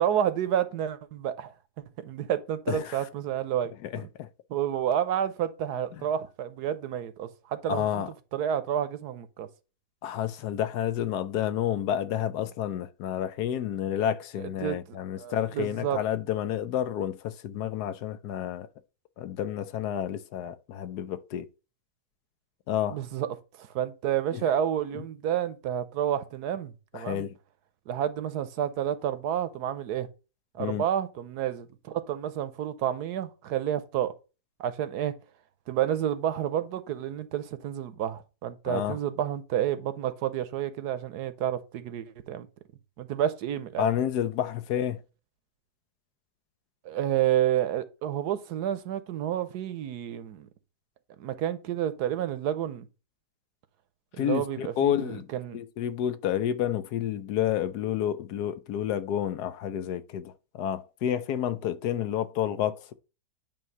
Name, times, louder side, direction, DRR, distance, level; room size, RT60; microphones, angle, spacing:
voice 1, 0.0-1.5 2.0-3.7 4.0-4.1 4.5-8.0 8.3-9.5 14.6-16.0 22.9-23.3 23.6-27.3 27.9-30.1 30.5-34.1 34.6-35.1 35.7-42.5 43.0-43.9 46.8-50.5 51.2-52.9 54.1-55.6, right 10 dB, 75° right, 1.2 m, -30 dB
voice 2, 2.7-3.0 3.8-4.3 7.7-8.1 10.0-18.7 19.2-21.5 22.7-23.0 24.3-24.4 26.9-27.3 30.6-30.9 38.7-39.0 43.8-45.0 54.2-55.3 55.5-62.8, left 10 dB, 70° left, 1.2 m, -30 dB
9.0 x 3.1 x 5.4 m
omnidirectional pair, 1.8 m